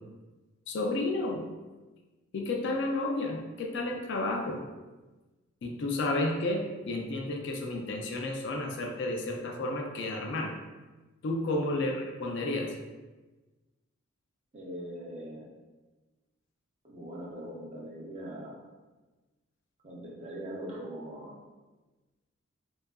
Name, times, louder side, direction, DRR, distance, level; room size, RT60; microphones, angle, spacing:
voice 1, 0.7-1.4 2.3-4.6 5.6-10.5 11.2-12.7, left 2 dB, 60° left, 2 dB, 0.3 m, -31 dB
voice 2, 14.5-15.5 16.8-18.6 19.8-21.4, right 1 dB, 30° right, -3 dB, 0.4 m, -41 dB
2.6 x 2.3 x 2.3 m, 1.2 s
head